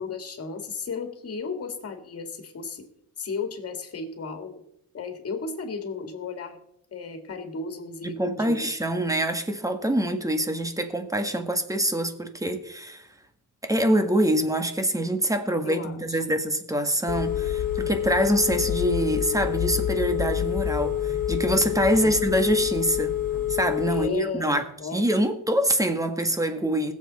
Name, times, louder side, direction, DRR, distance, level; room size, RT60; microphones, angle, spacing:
voice 1, 0.0-2.9 3.2-4.6 4.9-6.6 6.9-8.6 15.6-16.2 22.0-22.2 23.9-25.0, left 4 dB, 45° left, 2.3 m, -34 dB
voice 2, 8.0-13.0 13.6-23.1 23.5-24.6 24.9-26.9, right 1 dB, 10° right, 1.6 m, -25 dB
Telephone, 17.1-24.1, left 11 dB, 80° left, 1.8 m, -27 dB
20.5 x 7.7 x 4.3 m
cardioid pair, 125°, 32 cm